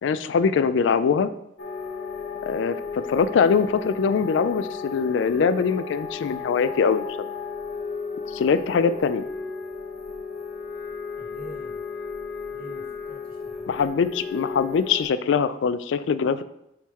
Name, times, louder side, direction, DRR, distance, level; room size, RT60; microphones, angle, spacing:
voice 1, 0.0-1.3 2.4-7.1 8.3-9.3 13.7-16.4, left 6 dB, 80° left, 13 dB, 0.3 m, -22 dB
sound 1, 1.6-15.0, left 5 dB, 55° left, 0.8 m, -34 dB
voice 2, 11.2-11.8 12.5-13.8 16.1-16.2, right 1 dB, 50° right, -2 dB, 1.6 m, -45 dB
8.6 x 3.6 x 3.0 m, 0.80 s
head